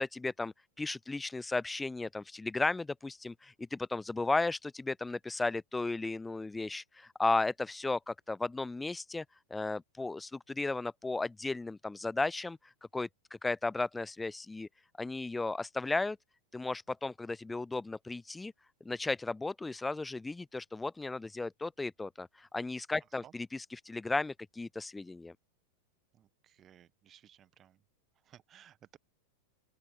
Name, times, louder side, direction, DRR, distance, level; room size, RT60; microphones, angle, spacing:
voice 1, 0.0-9.2 9.5-12.6 12.9-13.1 13.4-14.7 15.0-16.2 16.5-18.5 18.8-25.3, left 3 dB, 10° left, 0.4 m, -35 dB
voice 2, 26.1-27.8 28.2-29.0, right 10 dB, 30° right, 1.4 m, -59 dB
open air
figure-of-eight pair, 90°, 0 cm